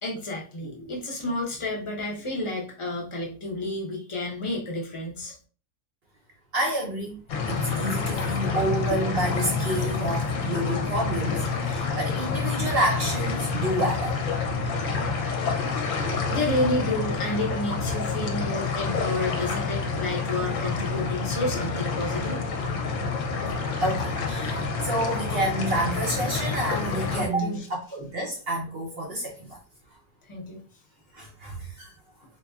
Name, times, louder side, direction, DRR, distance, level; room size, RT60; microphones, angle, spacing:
voice 1, 0.0-5.3 16.3-22.4 27.1-27.6 30.3-30.6, left 2 dB, 35° left, -1 dB, 0.5 m, -30 dB
voice 2, 6.5-7.2 7.5-14.2 23.5-29.6 31.1-31.9, right 1 dB, 60° right, 0 dB, 0.6 m, -29 dB
sound 1, 7.3-27.3, left 4 dB, 60° left, 0.9 m, -28 dB
4.2 x 2.7 x 2.3 m, 0.37 s
omnidirectional pair, 1.7 m